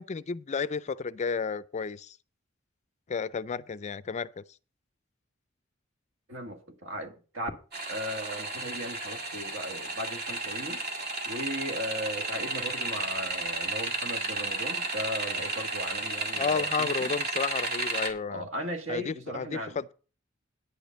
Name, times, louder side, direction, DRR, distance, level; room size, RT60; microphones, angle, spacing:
voice 1, 0.0-2.2 3.1-4.4 16.4-18.5 18.9-19.9, left 5 dB, 35° left, 0.4 m, -32 dB
voice 2, 6.3-7.5 7.9-10.8 11.2-17.1 18.3-19.8, equal, 75° right, 1.9 m, -37 dB
sound 1, 7.7-18.1, right 3 dB, 50° right, 2.0 m, -33 dB
10.0 x 5.2 x 7.6 m
head